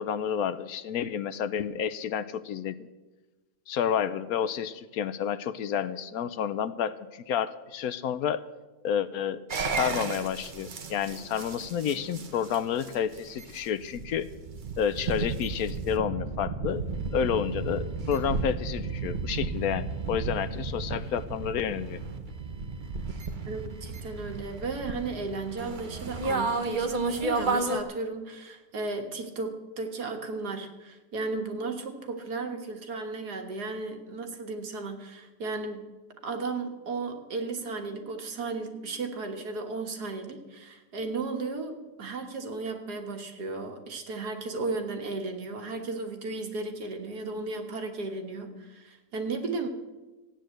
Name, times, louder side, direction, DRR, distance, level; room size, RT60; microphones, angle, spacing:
voice 1, 0.0-2.9 3.7-8.4 8.8-9.4 9.7-14.3 14.8-16.8 17.1-22.0, left 8 dB, 70° left, 14 dB, 1.1 m, -30 dB
sound 1, 9.5-27.8, right 4 dB, 40° right, 0.8 m, -33 dB
voice 2, 23.4-35.9 36.2-49.7, right 3 dB, 80° right, 5 dB, 2.0 m, -35 dB
15.0 x 9.2 x 7.7 m, 1.2 s
omnidirectional pair, 1.7 m